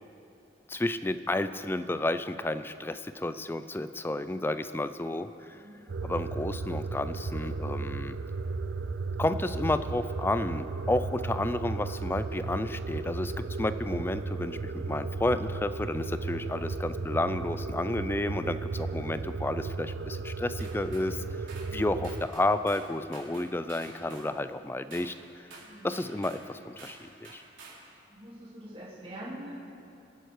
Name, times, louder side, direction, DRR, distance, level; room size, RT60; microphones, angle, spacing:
voice 1, 0.7-5.6 6.0-8.2 9.2-13.3 13.6-25.5 25.8-27.4, left 2 dB, 10° left, 12 dB, 0.4 m, -31 dB
sound 1, 5.9-22.3, right 3 dB, 70° right, 0.5 m, -35 dB
sound 2, 20.6-21.1 21.5-21.7 22.0-22.9 23.1-24.3 24.9-25.1 25.5-26.4 26.8-27.0 27.2-27.8, right 4 dB, 90° right, 3.8 m, -49 dB
voice 2, 25.6-25.9 28.1-29.5, right 1 dB, 30° right, -8 dB, 3.4 m, -44 dB
25.5 x 9.3 x 4.7 m, 2.7 s
head